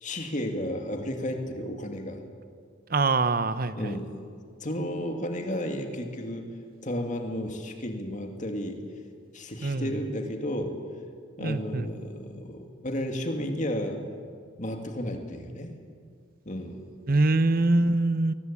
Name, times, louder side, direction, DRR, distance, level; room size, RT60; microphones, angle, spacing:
voice 1, 0.0-2.2 3.8-4.1 4.6-6.5 6.8-8.8 9.3-10.8 11.4-14.0 14.6-15.7 16.4-16.9, equal, 40° left, 4 dB, 2.3 m, -33 dB
voice 2, 2.9-4.0 9.6-9.9 11.4-11.9 17.1-18.3, right 2 dB, 45° right, 13 dB, 0.9 m, -24 dB
22.0 x 19.0 x 8.5 m, 2.1 s
head